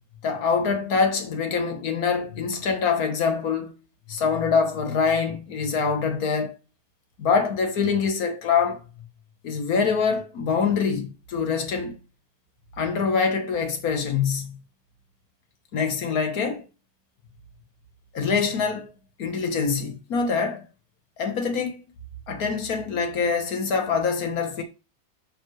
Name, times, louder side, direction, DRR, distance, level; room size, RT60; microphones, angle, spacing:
voice 1, 0.2-3.7 4.1-6.5 7.2-8.8 9.4-12.0 12.8-14.6 15.7-16.6 18.1-18.9 19.2-20.7 21.2-21.8 22.3-24.6, left 5 dB, 75° left, 1.8 m, -24 dB
6.8 x 5.8 x 3.2 m
omnidirectional pair, 1.6 m